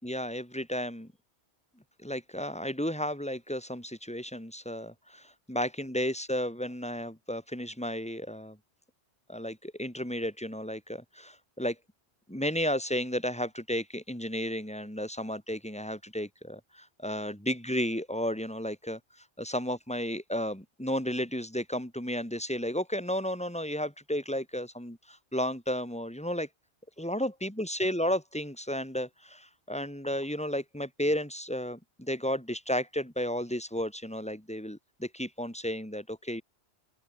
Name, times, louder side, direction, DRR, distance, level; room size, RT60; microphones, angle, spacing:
voice 1, 0.0-1.1 2.0-8.6 9.3-11.8 12.3-19.0 19.4-26.5 27.0-36.4, equal, 5° left, 4.9 m, -33 dB
open air
omnidirectional pair, 1.1 m